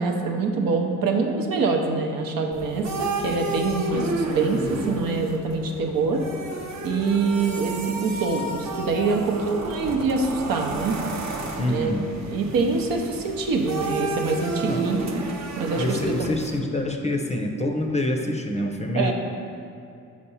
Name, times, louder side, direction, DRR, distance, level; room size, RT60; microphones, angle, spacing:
voice 1, 0.0-6.2 6.8-11.0 11.7-11.9 12.3-15.0 15.6-16.3 18.9-19.1, right 4 dB, 80° right, 3 dB, 0.8 m, -25 dB
sound 1, 2.5-16.6, right 2 dB, 55° right, 0.8 m, -31 dB
voice 2, 11.6-12.2 14.6-14.9 15.7-19.1, left 1 dB, 20° left, 3 dB, 0.5 m, -26 dB
4.9 x 4.3 x 5.5 m, 2.5 s
cardioid pair, 70°, 34 cm